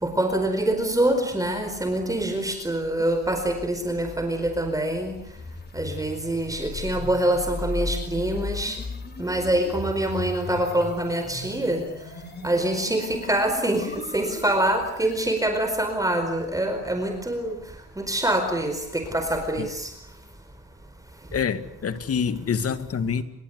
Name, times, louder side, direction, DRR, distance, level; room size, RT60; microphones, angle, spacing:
voice 1, 0.0-5.2 5.7-8.8 9.2-11.8 12.4-17.6 18.0-19.9, right 1 dB, 10° right, 6 dB, 4.7 m, -25 dB
sound 1, 3.1-15.3, left 3 dB, 35° left, 5.2 m, -37 dB
voice 2, 21.3-23.2, left 6 dB, 50° left, 11 dB, 2.3 m, -26 dB
29.0 x 24.0 x 8.3 m, 0.72 s
cardioid pair, 90°, 30 cm